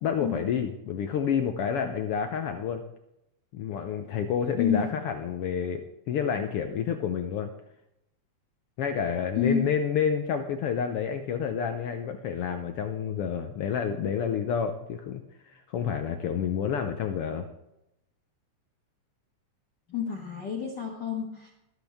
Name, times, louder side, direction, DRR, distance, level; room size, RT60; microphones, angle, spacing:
voice 1, 0.0-2.8 3.5-7.5 8.8-15.2 15.5-17.5, left 7 dB, 70° left, 7 dB, 1.4 m, -29 dB
voice 2, 9.4-9.7 19.9-21.5, left 7 dB, 45° left, -2 dB, 1.9 m, -28 dB
23.0 x 8.1 x 3.5 m, 0.84 s
omnidirectional pair, 3.4 m